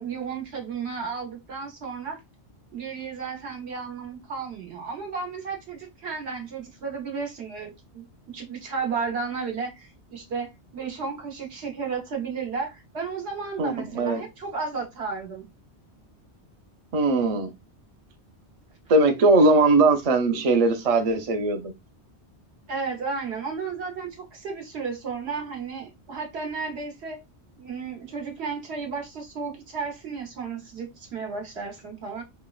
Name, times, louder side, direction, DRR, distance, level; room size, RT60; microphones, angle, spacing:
voice 1, 0.0-2.2 2.7-15.5 22.7-27.2 27.6-32.2, right 5 dB, 75° right, 1.1 m, -33 dB
voice 2, 13.6-14.2 16.9-17.5 18.9-21.7, right 2 dB, 50° right, 0.4 m, -20 dB
3.0 x 2.0 x 2.3 m
omnidirectional pair, 1.1 m